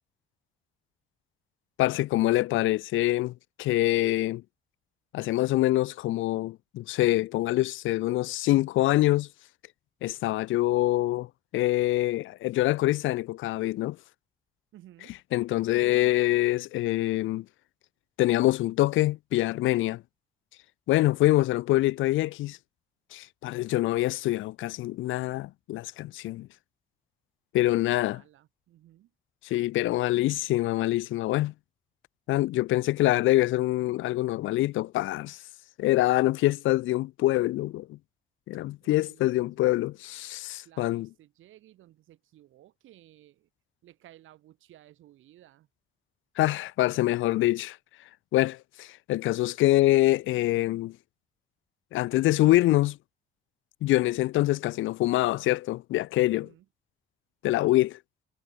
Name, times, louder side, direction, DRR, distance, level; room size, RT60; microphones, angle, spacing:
voice 1, 1.8-3.3 3.6-4.4 5.1-9.3 10.0-11.3 11.5-14.0 15.3-17.4 18.2-20.0 20.9-22.6 23.1-26.5 27.5-28.2 29.4-31.5 32.3-35.4 35.8-38.0 38.5-41.1 46.4-47.8 48.3-51.0 51.9-53.0 53.8-56.5 57.4-58.0, left 16 dB, 80° left, 0.6 m, -25 dB
voice 2, 14.7-15.2 27.6-29.1 38.5-40.3 40.6-43.5 43.8-45.7 56.3-56.7, right 14 dB, 80° right, 4.2 m, -56 dB
cardioid pair, 90°, 20 cm